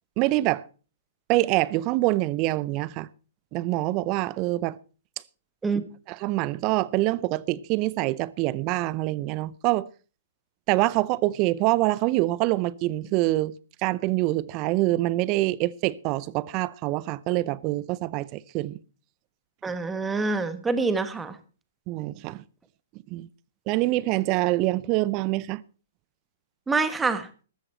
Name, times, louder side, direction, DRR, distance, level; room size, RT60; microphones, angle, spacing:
voice 1, 0.2-0.6 1.3-3.1 3.5-4.8 6.1-9.9 10.7-13.5 13.8-18.7 21.9-22.4 23.1-23.3 23.7-25.6, right 18 dB, 35° right, 0.6 m, -25 dB
voice 2, 19.6-21.4 26.7-27.3, right 4 dB, 10° right, 1.4 m, -26 dB
14.0 x 13.0 x 4.4 m
figure-of-eight pair, 120°, 0 cm